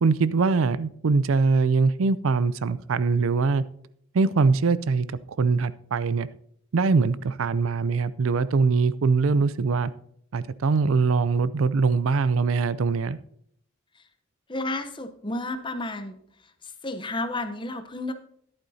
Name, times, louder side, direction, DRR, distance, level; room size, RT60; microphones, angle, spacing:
voice 1, 0.0-3.6 4.1-5.1 5.4-6.3 6.7-9.9 10.3-13.2, right 4 dB, 80° right, 16 dB, 0.5 m, -22 dB
voice 2, 14.5-16.2 16.8-18.1, left 2 dB, 25° left, 8 dB, 0.8 m, -31 dB
12.5 x 11.0 x 2.8 m, 0.67 s
head